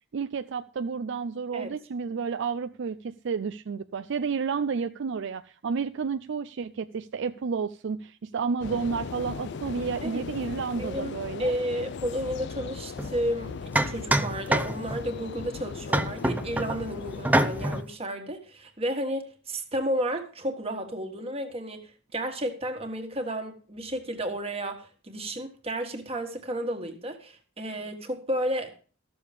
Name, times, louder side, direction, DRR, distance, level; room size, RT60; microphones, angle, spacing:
voice 1, 0.1-11.5, right 5 dB, 65° right, 0.4 m, -31 dB
sound 1, 8.6-17.8, left 5 dB, 60° left, 0.4 m, -38 dB
voice 2, 10.8-28.7, equal, 30° right, 1.7 m, -32 dB
sound 2, 13.0-13.1 13.8-15.1 15.9-16.8 17.2-17.8, right 1 dB, 10° right, 0.6 m, -25 dB
13.5 x 6.9 x 5.1 m
head